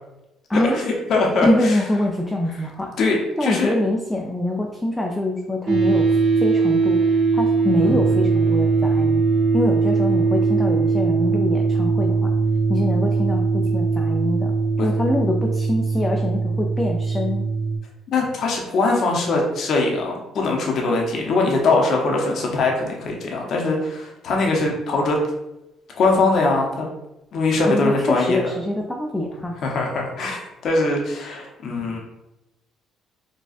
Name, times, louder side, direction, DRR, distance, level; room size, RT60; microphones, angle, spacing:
voice 1, 0.7-1.8 3.0-3.7 7.9-8.0 14.8-14.9 18.1-25.2 25.9-26.9 27.3-28.4 29.6-32.0, left 3 dB, 60° left, 0 dB, 0.7 m, -21 dB
voice 2, 1.5-2.9 3.4-6.1 6.4-9.2 9.5-12.4 12.7-17.5 27.7-29.5, left 1 dB, 10° left, 0 dB, 0.4 m, -24 dB
sound 1, 5.7-17.8, right 4 dB, 60° right, 0.7 m, -20 dB
4.0 x 2.3 x 2.4 m, 0.93 s
cardioid pair, 95°, 0 cm